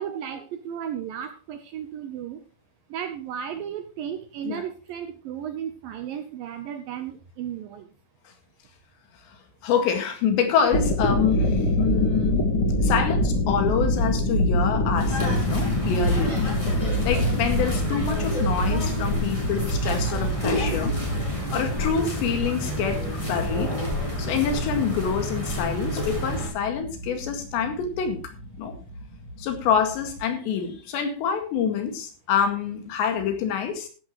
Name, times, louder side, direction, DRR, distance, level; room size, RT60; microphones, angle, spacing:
voice 1, 0.0-2.4 2.9-7.9, right 9 dB, 75° right, 8 dB, 2.2 m, -34 dB
voice 2, 9.6-12.5 12.8-16.3 17.0-21.0 21.5-23.7 24.2-28.2 28.6-28.7 29.4-33.9, left 7 dB, 85° left, 5 dB, 4.2 m, -26 dB
sound 1, 10.5-30.2, left 1 dB, 45° left, 1.9 m, -27 dB
sound 2, 15.0-26.5, equal, 5° left, 4.2 m, -29 dB
14.5 x 11.5 x 3.1 m, 0.36 s
omnidirectional pair, 5.0 m